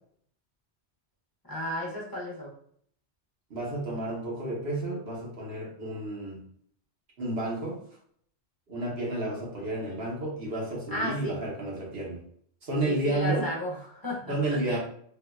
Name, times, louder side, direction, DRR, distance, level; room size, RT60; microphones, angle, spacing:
voice 1, 1.5-2.5 10.9-11.4 12.8-14.8, left 1 dB, 20° left, -3 dB, 0.8 m, -33 dB
voice 2, 3.5-6.4 7.2-7.8 8.7-12.2 12.6-13.5 14.3-14.8, right 2 dB, 60° right, -3 dB, 1.3 m, -31 dB
3.8 x 2.7 x 2.3 m, 0.63 s
omnidirectional pair, 1.1 m